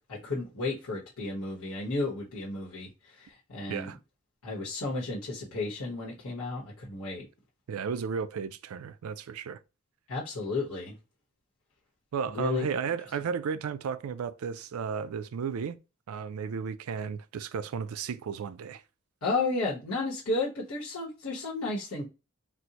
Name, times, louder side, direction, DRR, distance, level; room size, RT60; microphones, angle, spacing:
voice 1, 0.1-2.9 3.2-3.9 4.4-7.3 10.1-10.9 12.3-12.6 19.2-22.0, left 3 dB, 85° left, 1.1 m, -33 dB
voice 2, 7.7-9.6 12.1-15.8 16.1-18.8, right 6 dB, 75° right, 0.4 m, -34 dB
4.2 x 2.1 x 2.8 m
head